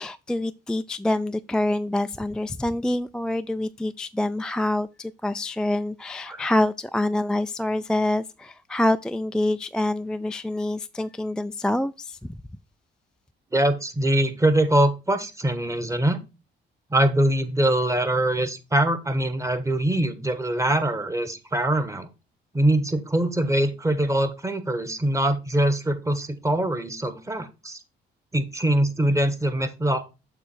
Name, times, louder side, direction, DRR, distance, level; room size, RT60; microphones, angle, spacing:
voice 1, 0.0-12.4, left 1 dB, 5° left, 0.3 m, -26 dB
voice 2, 13.5-16.2 16.9-22.1 22.5-27.8 28.3-30.0, right 1 dB, 15° right, 1.2 m, -23 dB
7.2 x 3.2 x 6.2 m
cardioid pair, 90°, 20 cm